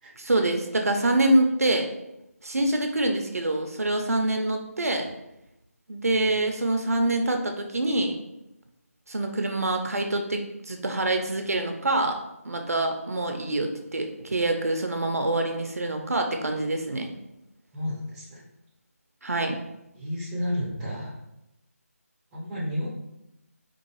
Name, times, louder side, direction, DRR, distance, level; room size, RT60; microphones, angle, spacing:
voice 1, 0.2-1.9 2.4-5.1 5.9-8.2 9.1-12.2 12.4-17.1 19.2-19.5, right 2 dB, 70° right, 4 dB, 0.6 m, -25 dB
voice 2, 17.7-18.4 20.0-21.2 22.3-22.9, left 1 dB, 5° right, -8 dB, 0.6 m, -31 dB
4.5 x 2.4 x 3.0 m, 0.90 s
figure-of-eight pair, 160°, 8 cm